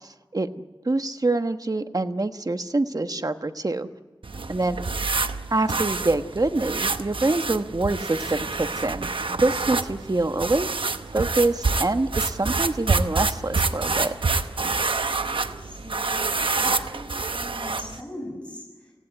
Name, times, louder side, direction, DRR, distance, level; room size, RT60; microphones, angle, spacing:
voice 1, 0.0-0.5 0.8-3.9 4.5-4.9 5.5-10.7 11.1-14.1, right 2 dB, 45° right, 8 dB, 1.3 m, -25 dB
sound 1, 4.2-18.0, right 3 dB, 80° right, 0.9 m, -27 dB
voice 2, 4.3-5.0 15.3-18.9, left 1 dB, 15° left, 0 dB, 6.9 m, -41 dB
25.0 x 17.0 x 8.9 m, 1.3 s
wide cardioid pair, 45°, 9 cm